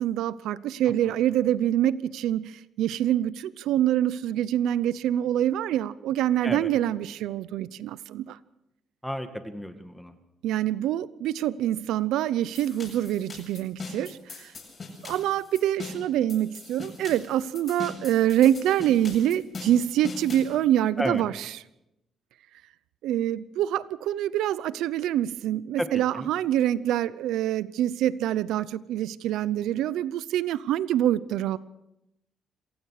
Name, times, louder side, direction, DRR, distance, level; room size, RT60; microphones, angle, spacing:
voice 1, 0.0-8.4 10.4-14.5 15.0-21.5 23.0-31.6, right 11 dB, 85° right, 18 dB, 0.7 m, -25 dB
voice 2, 9.0-10.2 21.0-21.2 25.8-26.3, equal, 5° left, 7 dB, 2.1 m, -32 dB
sound 1, 12.5-20.5, left 3 dB, 40° left, 7.9 m, -41 dB
27.0 x 16.0 x 6.7 m, 0.86 s
cardioid pair, 90°, 0 cm